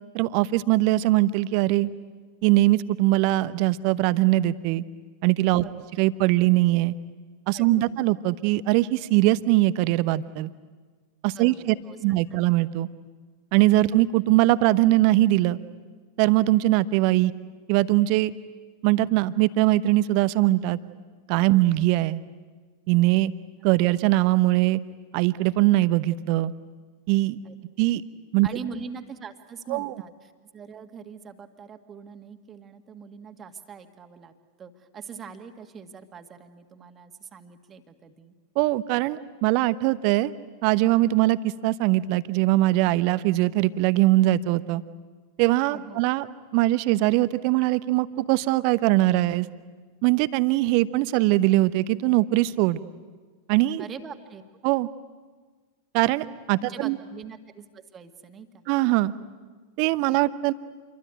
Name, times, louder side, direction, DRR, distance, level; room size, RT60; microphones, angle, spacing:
voice 1, 0.1-1.9 2.4-4.8 5.2-5.6 6.0-6.9 7.5-10.5 11.2-11.7 12.0-12.9 13.5-15.6 16.2-17.3 17.7-18.3 18.8-20.8 21.3-22.2 22.9-23.3 23.6-24.8 25.1-26.5 27.1-27.4 27.8-28.0 28.3-28.5 29.7-29.9 38.6-40.3 40.6-44.8 45.4-46.3 46.5-49.5 50.0-52.8 53.5-53.8 54.6-54.9 55.9-57.0 58.7-59.1 59.8-60.5, right 17 dB, 45° right, 15 dB, 0.9 m, -21 dB
voice 2, 5.5-5.8 7.5-8.0 11.3-12.4 21.5-21.6 27.4-27.6 28.4-34.3 34.6-38.3 45.7-46.1 53.8-54.4 56.6-58.6, right 6 dB, 25° right, 7 dB, 2.0 m, -42 dB
28.0 x 23.0 x 9.2 m, 1.5 s
figure-of-eight pair, 90°, 0 cm